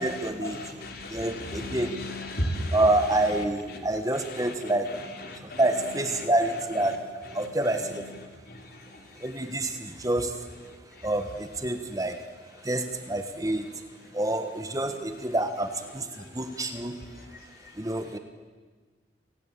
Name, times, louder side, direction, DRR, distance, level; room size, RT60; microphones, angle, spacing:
voice 1, 0.0-0.6 1.1-2.0 2.7-5.0 5.6-7.0 7.3-8.0 9.2-10.3 11.0-12.2 12.6-13.8 14.1-17.0 17.8-18.2, right 1 dB, 20° right, 8 dB, 1.3 m, -27 dB
voice 2, 0.6-2.8 5.3-5.6, left 1 dB, 55° left, 3 dB, 3.6 m, -33 dB
27.0 x 18.0 x 9.0 m, 1.4 s
head